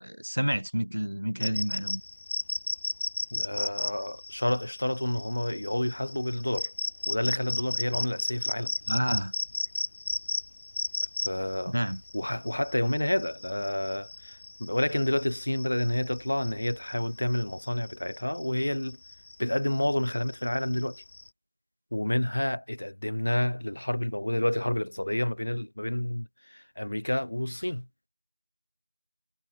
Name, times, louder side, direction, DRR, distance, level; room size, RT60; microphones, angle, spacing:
voice 1, 0.0-2.0 8.9-9.3 11.7-12.0, equal, 85° right, 6.0 m, -29 dB
sound 1, 1.4-21.3, left 2 dB, 25° left, 2.9 m, -35 dB
voice 2, 3.3-6.7 7.1-8.7 11.2-11.7 12.1-19.0 19.4-21.0 21.9-27.9, left 1 dB, 60° left, 5.0 m, -29 dB
figure-of-eight pair, 175°, 0 cm